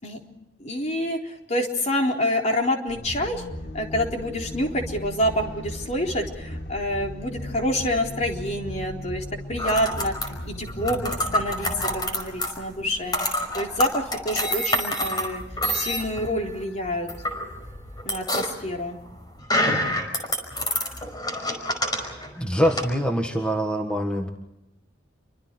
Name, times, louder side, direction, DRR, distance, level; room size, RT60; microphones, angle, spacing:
voice 1, 0.6-3.4 3.7-10.1 10.5-13.3 13.5-15.4 15.7-17.1 18.1-19.0, left 1 dB, 40° left, 1 dB, 4.0 m, -27 dB
sound 1, 2.9-13.1, left 1 dB, 60° left, 2.3 m, -37 dB
sound 2, 9.6-22.9, left 1 dB, 20° left, 5.3 m, -28 dB
voice 2, 22.4-24.3, equal, 5° left, 3 dB, 1.8 m, -24 dB
30.0 x 25.0 x 4.6 m, 0.88 s
head